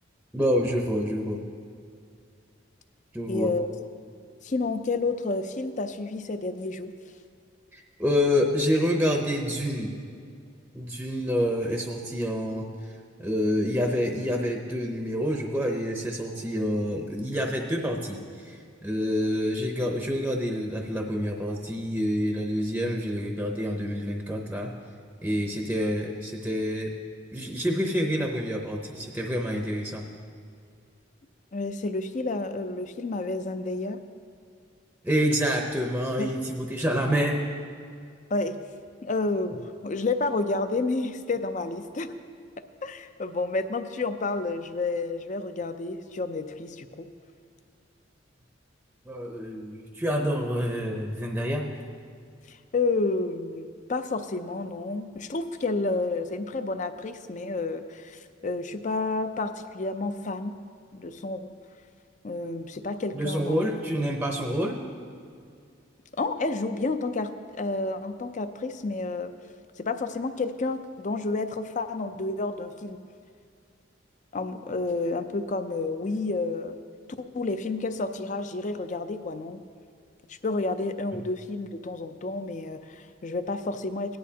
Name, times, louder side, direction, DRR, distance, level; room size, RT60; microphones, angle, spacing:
voice 1, 0.3-1.4 3.1-3.5 7.7-10.0 10.7-24.7 25.2-26.9 27.3-30.0 35.0-37.4 49.1-51.7 63.1-64.8 81.1-81.2, equal, 5° right, 1 dB, 0.7 m, -27 dB
voice 2, 3.3-3.7 4.4-6.9 31.5-34.0 36.2-36.3 38.3-38.6 39.0-42.1 42.8-47.1 52.5-60.5 60.9-61.5 62.2-63.6 66.1-69.3 69.8-73.0 74.3-76.8 77.2-79.6 80.3-84.2, left 3 dB, 40° left, 9 dB, 0.5 m, -30 dB
17.5 x 10.5 x 2.8 m, 2.3 s
head